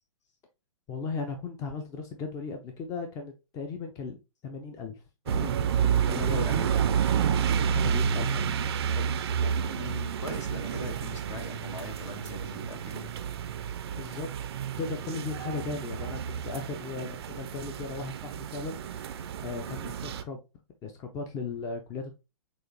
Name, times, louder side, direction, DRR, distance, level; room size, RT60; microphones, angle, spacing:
voice 1, 0.9-5.0 5.3-6.7 7.7-8.5 8.9-9.7 14.0-14.5 14.8-20.4 20.8-22.2, left 4 dB, 20° left, 0.5 m, -37 dB
sound 1, 5.3-20.2, right 8 dB, 50° right, 0.4 m, -30 dB
voice 2, 6.1-6.6 9.7-13.1, left 3 dB, 65° left, 1.4 m, -40 dB
6.2 x 2.4 x 2.9 m
figure-of-eight pair, 115°, 17 cm